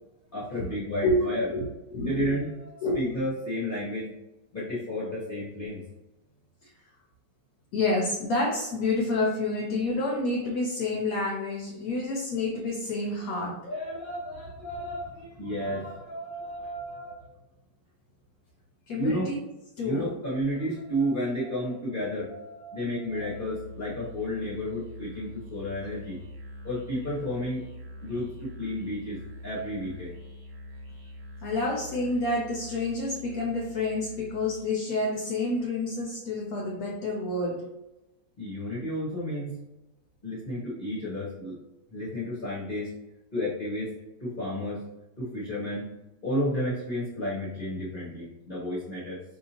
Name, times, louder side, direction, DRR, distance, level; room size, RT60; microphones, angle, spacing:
voice 1, 0.3-1.5 2.0-4.1 4.5-5.8 13.6-17.4 18.9-19.3 19.8-26.2 26.6-27.6 28.0-30.1 38.4-39.6 40.2-41.6 41.9-42.9 43.3-43.9 44.2-44.8 45.2-45.9 46.2-49.2, equal, 40° left, -8 dB, 0.9 m, -32 dB
voice 2, 1.0-2.4 2.8-3.2 6.6-6.7 7.7-13.7 18.9-19.4 19.8-20.1 31.4-37.7, left 2 dB, 65° left, 0 dB, 1.0 m, -29 dB
Musical instrument, 23.0-34.8, left 1 dB, 60° right, 1.4 m, -44 dB
4.9 x 2.7 x 2.8 m, 0.97 s
omnidirectional pair, 1.9 m